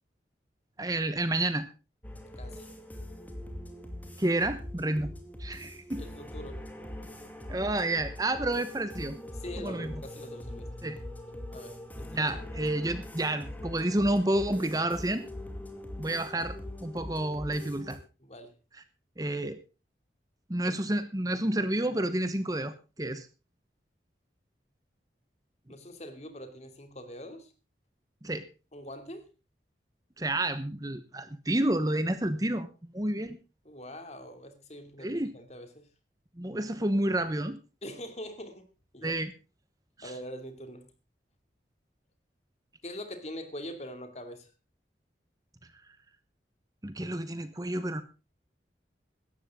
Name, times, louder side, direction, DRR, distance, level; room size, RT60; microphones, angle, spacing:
voice 1, 0.8-1.7 4.2-5.1 5.4-6.0 7.5-9.2 9.6-9.9 10.8-11.0 12.1-15.3 16.0-18.0 19.2-19.6 20.5-23.3 28.2-28.5 30.2-32.7 32.9-33.4 35.0-35.3 36.4-37.6 39.0-39.3 40.0-40.1 46.8-48.0, right 1 dB, 20° right, 1.0 m, -30 dB
sound 1, 2.0-18.0, left 1 dB, 10° left, 2.5 m, -42 dB
voice 2, 2.4-2.7 6.0-6.7 9.3-10.7 11.5-12.4 18.2-18.5 25.7-27.5 28.7-29.3 33.6-35.9 37.8-38.7 38.9-39.2 40.0-40.9 42.8-44.5, equal, 35° left, 2.7 m, -43 dB
17.5 x 13.0 x 3.7 m
head